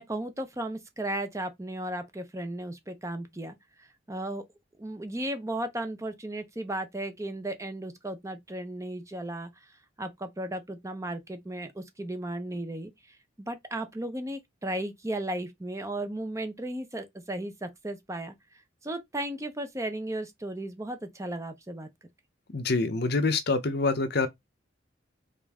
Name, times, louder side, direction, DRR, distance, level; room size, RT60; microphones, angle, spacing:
voice 1, 0.0-4.4 4.8-9.5 10.0-18.3 18.8-21.9, right 1 dB, 15° right, 0.7 m, -35 dB
voice 2, 22.5-24.3, left 3 dB, 55° left, 0.8 m, -26 dB
5.2 x 2.6 x 3.5 m
head